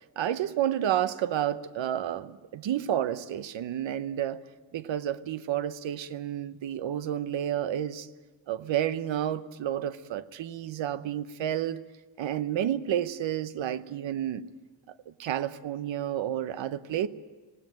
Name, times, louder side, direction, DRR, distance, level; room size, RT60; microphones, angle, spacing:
voice 1, 0.2-4.4 4.7-8.1 8.5-11.8 12.2-14.5 15.1-17.1, right 11 dB, 85° right, 0.9 m, -30 dB
19.0 x 18.0 x 9.2 m
cardioid pair, 95°, 44 cm